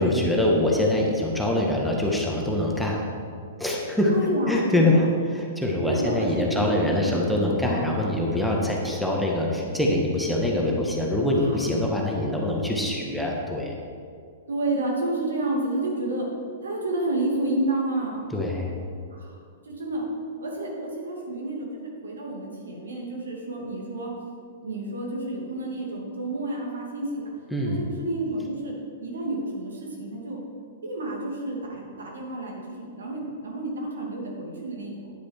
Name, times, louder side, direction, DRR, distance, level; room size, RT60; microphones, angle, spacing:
voice 1, 0.0-3.1 3.6-4.1 4.5-5.0 5.3-13.8 18.3-18.7 27.5-27.8, left 1 dB, ahead, -2 dB, 1.6 m, -24 dB
voice 2, 4.1-5.0 5.8-7.2 7.6-8.0 11.3-11.6 14.5-16.3 16.6-18.2 19.1-19.3 19.7-20.0 20.4-24.1 24.6-27.3 27.7-30.4 30.8-35.1, right 2 dB, 70° right, -1 dB, 2.5 m, -30 dB
10.0 x 9.2 x 4.7 m, 2.2 s
figure-of-eight pair, 105°, 0 cm